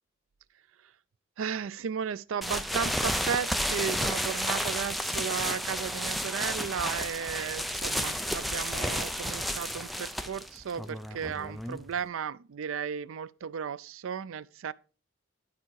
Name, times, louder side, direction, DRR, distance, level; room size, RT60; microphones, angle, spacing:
voice 1, 1.4-14.7, right 7 dB, 85° right, 0.4 m, -34 dB
sound 1, 2.4-12.0, equal, ahead, 0.4 m, -32 dB
11.5 x 4.7 x 4.6 m
head